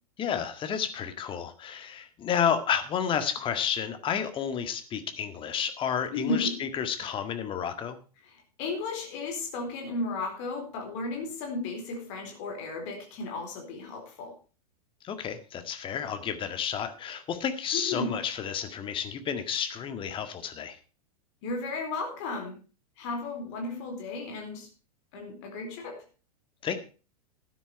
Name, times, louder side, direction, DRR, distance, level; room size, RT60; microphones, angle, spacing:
voice 1, 0.2-8.0 15.0-20.8 26.6-26.8, left 8 dB, 25° left, 8 dB, 1.8 m, -31 dB
voice 2, 6.1-6.6 8.3-14.4 17.7-18.2 21.4-22.6 23.0-24.7 25.1-26.0, left 3 dB, 45° left, 3 dB, 4.2 m, -34 dB
12.5 x 10.0 x 4.7 m, 0.35 s
figure-of-eight pair, 95°, 20 cm